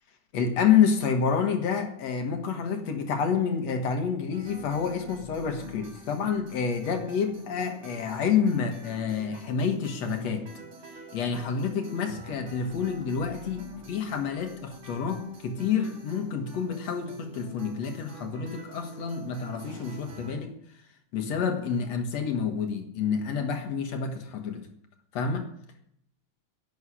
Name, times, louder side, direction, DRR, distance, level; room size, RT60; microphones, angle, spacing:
voice 1, 0.3-10.5 11.1-20.5 21.1-24.7 25.1-25.5, left 6 dB, 60° left, 5 dB, 2.5 m, -28 dB
sound 1, 4.3-20.4, equal, 60° right, 4.8 m, -45 dB
11.5 x 8.1 x 9.8 m, 0.72 s
omnidirectional pair, 3.5 m